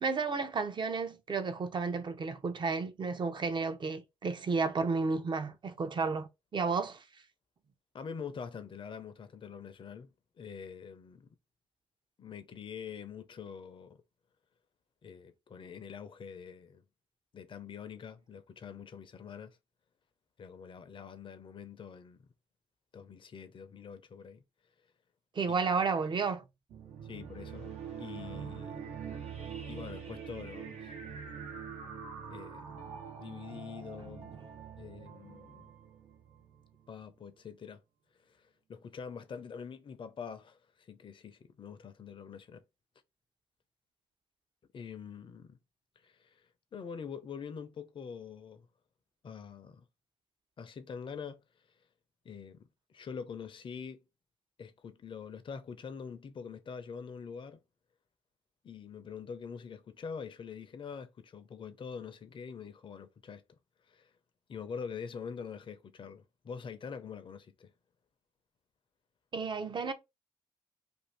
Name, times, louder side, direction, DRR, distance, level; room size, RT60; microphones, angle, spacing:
voice 1, 0.0-7.0 25.3-26.4 69.3-69.9, right 4 dB, 45° right, 0.7 m, -32 dB
voice 2, 7.9-10.1 10.4-11.3 12.2-14.0 15.0-16.8 17.3-19.6 20.4-22.2 22.9-24.4 27.1-28.8 29.7-30.9 32.3-32.7 33.2-34.3 34.8-35.7 36.9-37.8 38.3-42.6 44.7-45.6 46.0-48.7 49.2-49.9 50.6-51.4 52.2-54.0 54.6-57.6 58.6-63.4 63.9-64.1 64.5-67.7, left 6 dB, 50° left, 0.6 m, -45 dB
sound 1, 26.7-36.9, right 6 dB, 75° right, 0.9 m, -44 dB
2.6 x 2.5 x 3.3 m
supercardioid pair, 55°, 11 cm